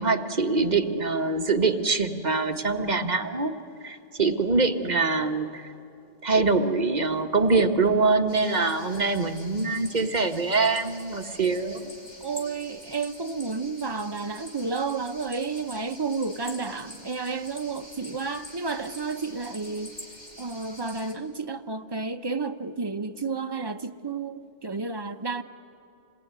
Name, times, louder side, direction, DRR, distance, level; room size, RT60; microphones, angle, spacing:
voice 1, 0.0-3.5 3.8-5.6 6.2-11.9, right 3 dB, 40° right, 1.3 m, -24 dB
sound 1, 8.3-21.1, left 1 dB, 35° left, 3.1 m, -46 dB
voice 2, 12.2-20.0 20.4-25.4, right 4 dB, 25° right, 0.8 m, -31 dB
27.5 x 19.5 x 9.4 m
omnidirectional pair, 1.2 m